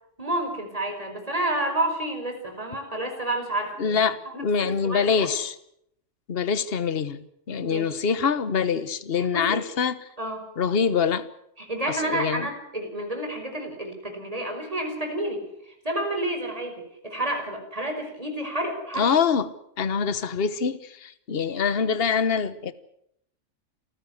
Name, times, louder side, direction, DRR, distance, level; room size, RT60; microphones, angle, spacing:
voice 1, 0.2-5.3 7.6-7.9 9.2-9.6 10.2-10.5 11.6-19.1, right 1 dB, 25° right, 4 dB, 5.3 m, -30 dB
voice 2, 3.8-5.5 6.3-7.2 7.5-10.0 10.6-11.3 11.9-12.5 19.0-19.5 19.8-22.7, left 6 dB, 50° left, 14 dB, 1.3 m, -24 dB
28.0 x 15.0 x 8.2 m, 0.75 s
omnidirectional pair, 1.3 m